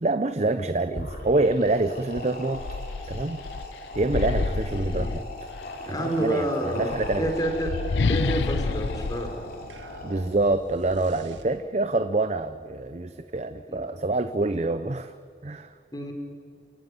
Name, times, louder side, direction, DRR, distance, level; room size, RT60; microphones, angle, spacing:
voice 1, 0.0-2.7 3.1-3.4 4.0-5.2 6.0-7.3 10.0-15.1 15.4-15.7, right 2 dB, 35° right, 11 dB, 0.6 m, -26 dB
sound 1, 0.9-10.5, left 1 dB, 50° left, 3.9 m, -39 dB
sound 2, 2.1-5.8 6.7-10.3, left 4 dB, 75° left, 0.5 m, -30 dB
voice 2, 4.8-5.2 5.9-7.7 8.1-9.3 13.7-13.8 15.9-16.1, right 1 dB, 20° left, 4 dB, 3.5 m, -29 dB
sound 3, 9.7-12.0, right 1 dB, 80° right, 1.9 m, -47 dB
28.0 x 16.0 x 9.5 m, 2.2 s
head